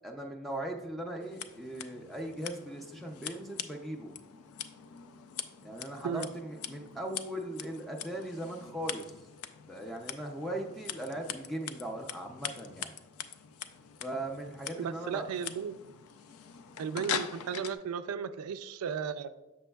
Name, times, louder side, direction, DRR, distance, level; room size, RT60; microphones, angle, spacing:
voice 1, 0.0-4.1 5.6-9.1 9.7-12.9 14.0-15.3, right 1 dB, ahead, 0 dB, 0.4 m, -39 dB
Scissors, 1.2-17.7, left 9 dB, 75° left, 0.4 m, -43 dB
voice 2, 14.8-15.8 16.8-19.3, right 7 dB, 80° right, 13 dB, 0.3 m, -35 dB
7.0 x 6.1 x 2.2 m, 1.0 s
head